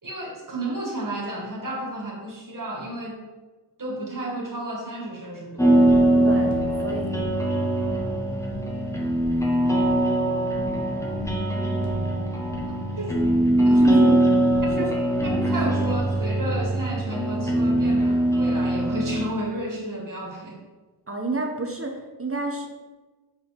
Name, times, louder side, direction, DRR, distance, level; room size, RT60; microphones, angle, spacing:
voice 1, 0.0-3.2 3.8-5.7 13.0-13.2 13.7-13.8 14.8-14.9 15.2-20.6, right 1 dB, 45° right, -2 dB, 2.1 m, -32 dB
sound 1, 5.6-15.9, left 2 dB, 65° left, 1.8 m, -36 dB
sound 2, 5.6-19.3, right 1 dB, 5° left, 1.2 m, -22 dB
voice 2, 6.2-7.2 13.8-14.2 14.8-14.9 15.4-15.6 21.1-22.7, right 3 dB, 30° right, 2 dB, 1.0 m, -30 dB
6.2 x 5.8 x 5.3 m, 1.2 s
wide cardioid pair, 85°, 43 cm